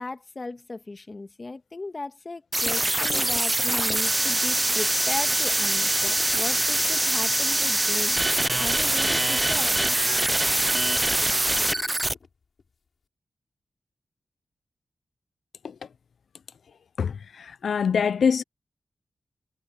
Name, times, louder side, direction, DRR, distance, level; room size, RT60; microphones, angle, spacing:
voice 1, 0.0-8.2 8.6-9.8, left 3 dB, 30° left, 1.6 m, -36 dB
sound 1, 2.5-12.1, right 1 dB, 15° right, 0.5 m, -23 dB
sound 2, 5.8-9.3 9.6-12.7, left 5 dB, 55° left, 6.1 m, -49 dB
voice 2, 17.0-18.4, left 6 dB, 80° left, 0.3 m, -24 dB
wide cardioid pair, 145°, 0 cm